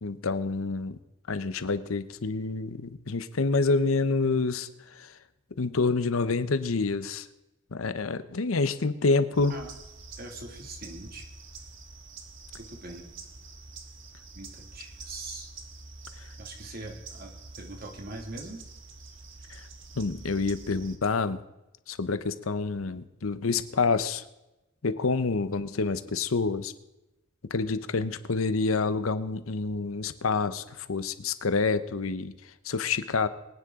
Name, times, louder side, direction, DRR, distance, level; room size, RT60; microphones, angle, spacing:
voice 1, 0.0-1.0 1.3-5.1 5.6-7.3 7.7-9.6 19.5-19.6 20.0-21.4 21.9-24.2 24.8-26.7 27.4-32.3 32.6-33.3, left 4 dB, 85° left, 13 dB, 0.8 m, -27 dB
sound 1, 9.3-21.0, right 3 dB, 65° right, 1.4 m, -46 dB
voice 2, 10.2-11.3 12.6-13.0 14.3-15.5 16.4-18.6, right 2 dB, 45° right, 3 dB, 2.1 m, -42 dB
23.0 x 9.6 x 3.7 m, 0.96 s
head